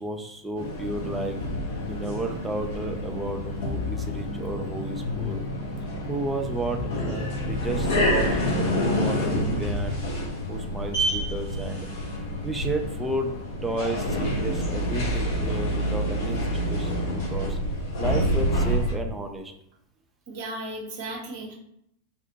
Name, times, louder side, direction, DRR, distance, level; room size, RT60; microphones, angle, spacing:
voice 1, 0.0-1.4 1.9-5.4 6.1-8.4 8.8-10.0 10.5-11.9 12.4-13.3 13.6-17.6 18.0-19.5, right 2 dB, 10° right, 3 dB, 0.4 m, -32 dB
sound 1, 0.5-18.9, equal, 55° left, 0.9 m, -28 dB
voice 2, 16.7-17.2 20.3-21.5, right 2 dB, 45° right, 0 dB, 0.7 m, -36 dB
2.9 x 2.1 x 2.6 m, 0.77 s
figure-of-eight pair, 90°, 0 cm